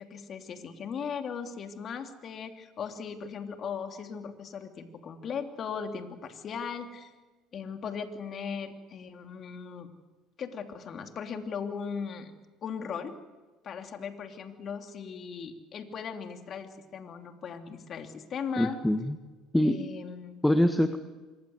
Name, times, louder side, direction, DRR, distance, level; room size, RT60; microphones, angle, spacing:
voice 1, 0.0-7.1 7.5-9.9 10.4-12.3 12.6-13.1 13.6-18.8 19.6-20.4, left 6 dB, 45° left, 6 dB, 3.2 m, -38 dB
voice 2, 18.6-19.1 19.5-19.8 20.4-21.0, left 1 dB, 5° left, 8 dB, 1.5 m, -24 dB
26.5 x 22.5 x 8.2 m, 1.2 s
supercardioid pair, 95°, 0 cm